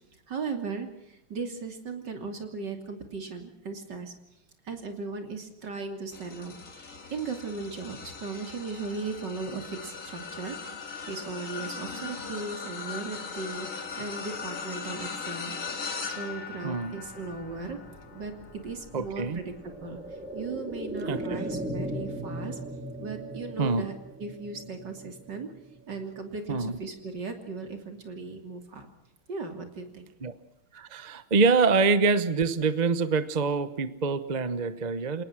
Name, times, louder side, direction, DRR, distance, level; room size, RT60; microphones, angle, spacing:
voice 1, 0.3-4.1 4.6-10.6 11.1-15.9 16.2-17.8 18.1-20.0 20.3-22.6 23.0-23.9 24.2-25.5 25.9-28.9 29.3-30.1, right 4 dB, 60° right, 5 dB, 3.5 m, -37 dB
sound 1, 6.1-21.6 22.1-22.4 23.7-23.8, left 5 dB, 40° left, 2.4 m, -40 dB
voice 2, 16.6-16.9 18.9-19.4 21.1-21.4 23.6-23.8 26.5-26.8 30.2-30.3 30.7-35.2, right 4 dB, 35° right, 13 dB, 0.7 m, -25 dB
sound 2, 16.9-26.5 26.9-27.0, right 1 dB, 5° right, 4.1 m, -39 dB
28.0 x 18.5 x 6.0 m, 0.88 s
omnidirectional pair, 2.2 m